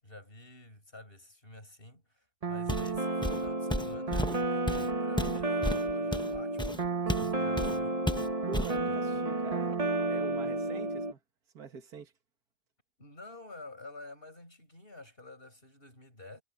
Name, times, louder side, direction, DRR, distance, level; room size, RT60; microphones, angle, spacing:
voice 1, 0.0-8.0 8.7-9.0 10.7-10.9 13.0-16.4, left 2 dB, 30° left, 8.2 m, -50 dB
sound 1, 2.4-11.1, right 2 dB, 25° right, 1.0 m, -31 dB
Walk footsteps, 2.7-3.0 3.2-7.3 7.6-7.8 8.1-8.8, left 1 dB, 5° left, 0.6 m, -33 dB
voice 2, 8.5-9.7 10.1-11.2 11.5-12.1, right 5 dB, 60° right, 2.3 m, -44 dB
omnidirectional pair, 1.8 m